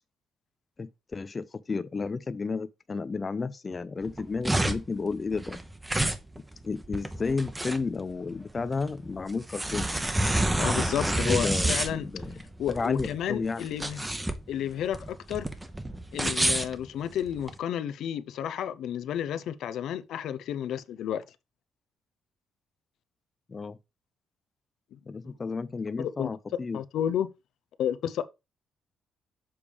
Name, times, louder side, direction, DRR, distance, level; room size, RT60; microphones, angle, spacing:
voice 1, 0.8-5.6 6.6-9.9 11.1-12.4 12.7-13.7 23.5-23.8 25.1-26.8, left 4 dB, 30° left, 0.5 m, -32 dB
sound 1, 4.0-17.5, right 1 dB, 10° right, 0.9 m, -29 dB
voice 2, 10.6-12.1 12.6-14.0 14.5-15.5 16.1-21.2 25.2-25.3 26.0-26.3 26.7-27.3 27.8-28.2, left 10 dB, 75° left, 0.6 m, -31 dB
7.0 x 3.3 x 5.1 m
cardioid pair, 90°, 0 cm